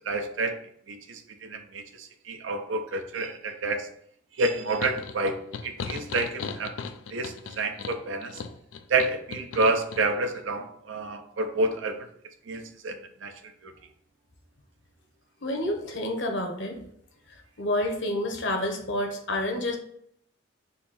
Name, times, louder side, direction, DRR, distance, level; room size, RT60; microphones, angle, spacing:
voice 1, 0.1-0.6 0.9-3.9 4.3-6.7 7.1-8.4 8.9-12.1 12.5-13.3 13.6-13.7, right 2 dB, 75° right, 6 dB, 0.6 m, -29 dB
sound 1, 4.8-10.0, left 5 dB, 80° left, 0.4 m, -37 dB
voice 2, 15.4-16.8 17.3-19.8, left 1 dB, 65° left, 3 dB, 1.0 m, -29 dB
4.2 x 2.8 x 4.1 m, 0.70 s
head